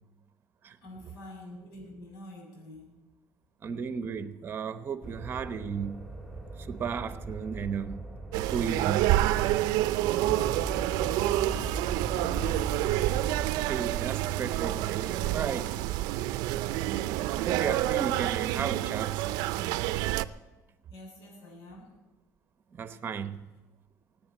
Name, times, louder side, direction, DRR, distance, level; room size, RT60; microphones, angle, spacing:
voice 1, 0.8-3.0 11.4-11.8 12.1-12.7 15.2-15.3 15.7-15.9 20.9-22.0, left 1 dB, 75° left, 6.9 m, -47 dB
voice 2, 3.6-6.0 6.7-8.0 8.3-9.3 13.6-15.7 17.5-19.2 22.7-23.4, right 6 dB, 35° right, 0.9 m, -34 dB
sound 1, 5.0-13.4, right 2 dB, ahead, 2.7 m, -39 dB
sound 2, 8.3-20.3, right 15 dB, 85° right, 0.5 m, -28 dB
17.0 x 8.8 x 9.0 m
cardioid pair, 140°, 7 cm